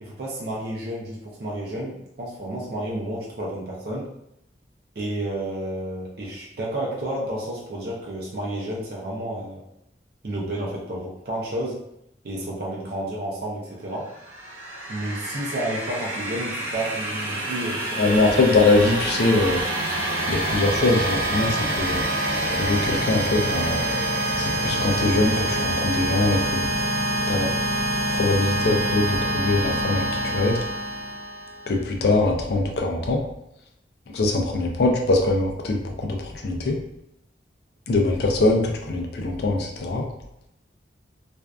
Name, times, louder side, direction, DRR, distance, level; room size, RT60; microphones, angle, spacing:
voice 1, 0.0-4.1 5.0-9.6 10.2-11.8 12.2-14.1 14.9-18.3, right 1 dB, 60° right, -3 dB, 0.5 m, -31 dB
sound 1, 14.1-31.7, right 1 dB, 90° right, 0.9 m, -26 dB
voice 2, 18.0-19.6 20.3-22.0 22.5-23.8 24.4-26.6 27.3-27.5 28.1-30.6 31.7-33.2 34.1-36.8 37.9-40.0, left 2 dB, 60° left, 1 dB, 0.4 m, -22 dB
2.5 x 2.2 x 2.2 m, 0.80 s
head